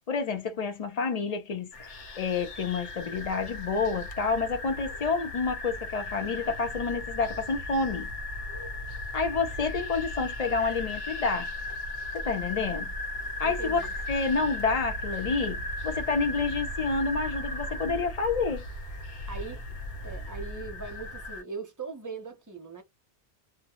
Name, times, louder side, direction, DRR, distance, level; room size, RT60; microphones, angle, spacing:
voice 1, 0.1-1.9 2.2-8.1 9.1-11.5 12.2-12.9 13.4-13.8 14.1-18.7, left 4 dB, 40° left, 0.6 m, -29 dB
sound 1, 1.7-21.4, left 1 dB, 85° left, 1.0 m, -36 dB
voice 2, 13.4-13.9 19.3-19.6 20.0-22.8, right 4 dB, 20° right, 0.5 m, -40 dB
2.2 x 2.1 x 2.9 m
omnidirectional pair, 1.2 m